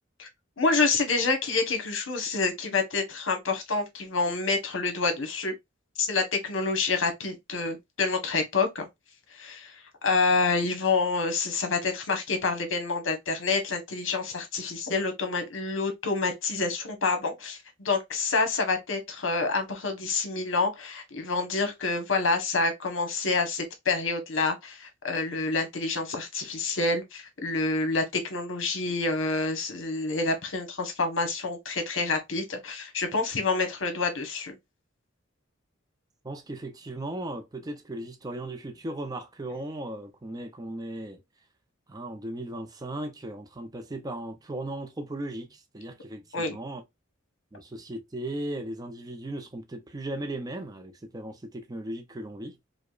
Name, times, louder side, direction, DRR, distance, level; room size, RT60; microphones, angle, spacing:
voice 1, 0.6-5.5 6.0-8.9 9.3-9.8 10.0-34.5 46.3-46.6, left 3 dB, 70° left, 1.0 m, -27 dB
voice 2, 36.2-41.2 41.9-46.8 47.5-52.6, right 1 dB, 20° right, 0.5 m, -37 dB
4.8 x 2.1 x 2.3 m
head